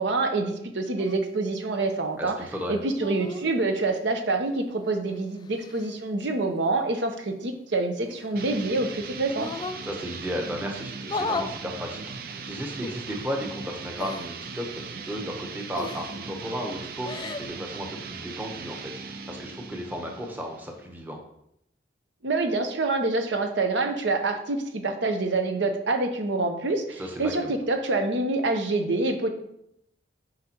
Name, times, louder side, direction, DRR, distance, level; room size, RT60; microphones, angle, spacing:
voice 1, 0.0-2.4 2.7-9.5 22.2-29.3, right 2 dB, 80° right, 6 dB, 0.8 m, -26 dB
sound 1, 1.0-1.2 2.9-3.5 4.8-5.9 8.0-8.7 9.3-9.8 11.0-11.5 12.8-12.9 14.0-14.3 15.7-16.2 16.9-17.5, left 3 dB, 25° left, 0.3 m, -35 dB
voice 2, 2.2-2.8 9.8-21.2 27.0-27.5, equal, 10° right, 1 dB, 0.8 m, -34 dB
sound 2, 8.3-20.9, right 5 dB, 50° right, 0.5 m, -39 dB
8.0 x 5.1 x 2.9 m, 0.76 s
head